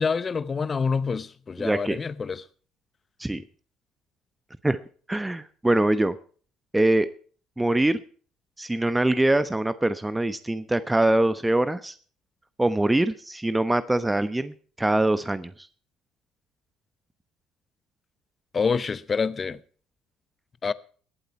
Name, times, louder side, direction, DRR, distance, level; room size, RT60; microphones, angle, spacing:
voice 1, 0.0-2.4 18.5-19.6 20.6-20.7, left 5 dB, 35° left, 0.7 m, -27 dB
voice 2, 1.6-2.0 3.2-3.4 4.6-4.8 5.1-6.2 6.7-7.1 7.6-8.0 8.6-11.9 12.6-15.5, right 1 dB, 10° right, 0.9 m, -23 dB
20.5 x 8.2 x 4.4 m
hypercardioid pair, 55°, 0 cm